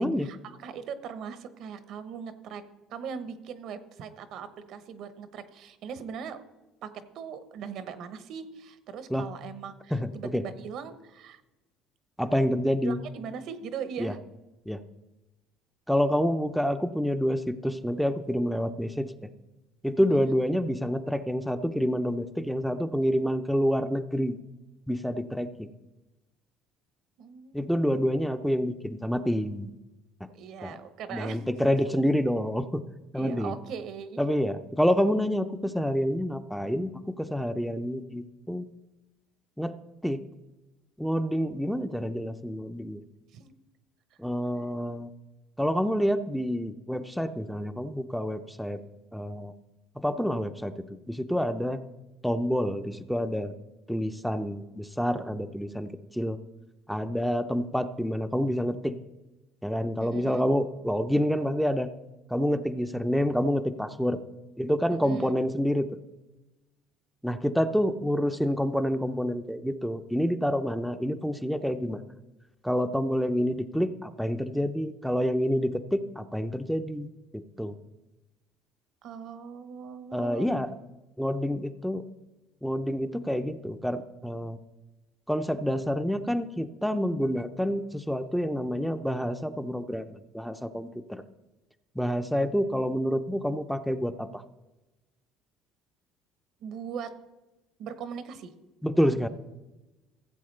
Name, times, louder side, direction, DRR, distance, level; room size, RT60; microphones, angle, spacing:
voice 1, 0.2-2.6 2.9-6.4 6.8-6.9 7.1-11.4 12.8-14.2 20.0-20.3 27.2-27.9 30.3-31.8 33.2-34.2 43.3-43.6 60.0-60.4 65.0-65.3 79.0-80.5 96.6-97.1 97.8-98.5, right 6 dB, 65° right, 11 dB, 1.0 m, -40 dB
voice 2, 9.9-10.4 12.2-13.0 14.0-14.1 14.7-14.8 15.9-19.1 19.8-24.4 24.9-25.7 27.5-29.7 30.6-30.8 31.1-32.8 33.1-33.6 34.2-38.6 39.6-39.7 40.0-40.2 41.0-43.0 44.2-45.1 45.6-48.8 49.1-49.5 50.0-51.8 52.2-53.5 53.9-56.4 56.9-59.0 59.6-61.9 62.3-64.2 64.6-65.9 67.2-72.0 72.6-77.8 80.1-80.8 81.2-82.0 82.6-84.6 85.3-91.2 92.0-94.4 98.8-99.3, equal, ahead, 8 dB, 0.6 m, -28 dB
15.0 x 7.7 x 3.3 m, 1.1 s
supercardioid pair, 90°, 0 cm